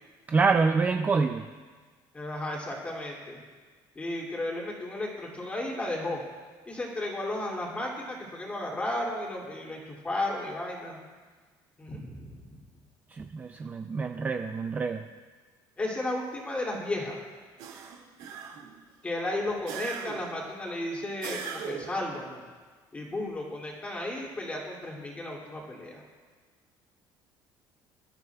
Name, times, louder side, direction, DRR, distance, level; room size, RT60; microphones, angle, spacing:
voice 1, 0.3-1.5 13.1-15.0, right 4 dB, 20° right, 6 dB, 0.4 m, -26 dB
voice 2, 2.1-3.4 3.9-6.3 6.7-11.0 11.8-12.3 15.8-17.3 19.0-22.4 22.9-26.0, left 1 dB, 15° left, -3 dB, 2.7 m, -34 dB
sound 1, 17.6-18.8 19.7-20.4 21.2-22.0, right 7 dB, 85° right, 2.2 m, -39 dB
25.0 x 12.5 x 2.4 m, 1.4 s
cardioid pair, 165°, 9 cm